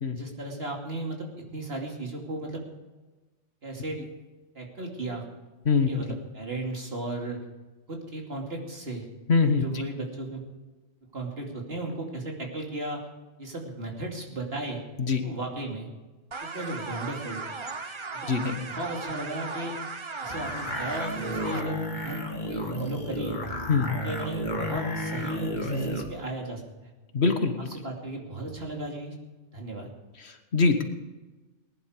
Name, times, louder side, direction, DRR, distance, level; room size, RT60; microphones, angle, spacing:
voice 1, 0.1-2.6 3.6-4.0 4.5-5.2 5.8-7.4 7.9-9.0 9.5-10.4 11.1-13.0 13.4-14.8 15.2-15.9 16.4-17.4 18.1-18.3 18.6-19.8 20.2-23.4 24.0-26.9 27.6-29.1 29.5-29.9, right 2 dB, 55° right, 0 dB, 2.9 m, -35 dB
voice 2, 9.3-9.6 15.1-15.2 18.3-18.6 23.7-23.9 27.1-27.5 30.5-30.8, left 4 dB, 65° left, 6 dB, 1.7 m, -22 dB
sound 1, 16.3-21.6, right 4 dB, 30° right, 0.7 m, -37 dB
sound 2, 20.3-26.1, left 1 dB, 40° left, 1.9 m, -32 dB
19.5 x 11.0 x 5.0 m, 1.2 s
omnidirectional pair, 1.2 m